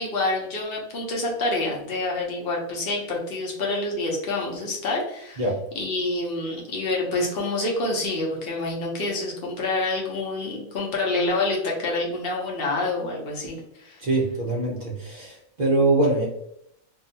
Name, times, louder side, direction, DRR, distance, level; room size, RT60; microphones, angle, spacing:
voice 1, 0.0-5.4 5.8-14.0, left 2 dB, 50° left, -2 dB, 0.8 m, -27 dB
voice 2, 14.0-16.3, right 2 dB, 60° right, -3 dB, 0.4 m, -23 dB
2.6 x 2.3 x 2.7 m, 0.78 s
omnidirectional pair, 1.5 m